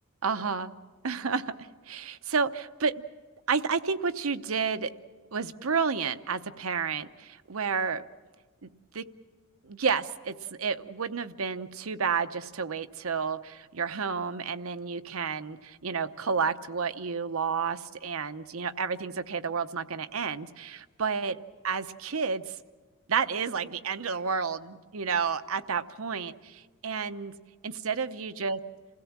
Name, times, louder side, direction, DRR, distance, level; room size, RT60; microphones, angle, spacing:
voice 1, 0.2-0.7 1.0-2.9 3.5-4.9 5.3-8.0 8.6-9.0 9.6-21.4 21.6-22.6 23.1-27.3 27.6-28.6, right 5 dB, 85° right, 11 dB, 0.8 m, -31 dB
28.0 x 16.5 x 7.3 m, 1.4 s
head